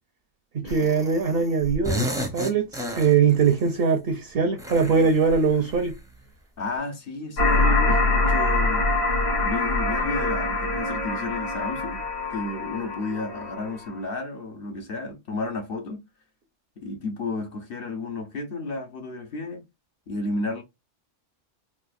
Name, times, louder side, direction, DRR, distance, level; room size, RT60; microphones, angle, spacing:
voice 1, 0.5-6.0 7.6-8.0, right 5 dB, 60° right, 0.7 m, -22 dB
sound 1, 0.7-1.3 1.6-3.6 4.6-6.1, equal, 5° right, 0.5 m, -32 dB
voice 2, 6.6-8.9 9.4-12.0 12.3-16.1 16.8-19.7 20.1-20.6, left 2 dB, 55° left, 0.8 m, -32 dB
sound 2, 7.4-13.9, left 2 dB, 75° left, 1.5 m, -24 dB
4.1 x 2.4 x 2.4 m
omnidirectional pair, 1.3 m